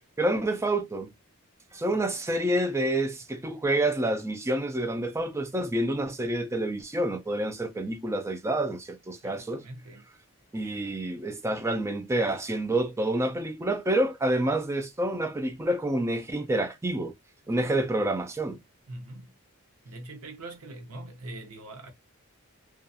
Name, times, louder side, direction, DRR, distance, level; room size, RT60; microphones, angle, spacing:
voice 1, 0.2-1.1 1.7-9.6 10.5-17.1 17.5-18.6, right 1 dB, 10° right, 0.3 m, -28 dB
voice 2, 9.2-10.0 17.5-17.7 18.9-19.3 19.8-21.9, right 2 dB, 80° right, 0.7 m, -43 dB
2.3 x 2.3 x 2.6 m
head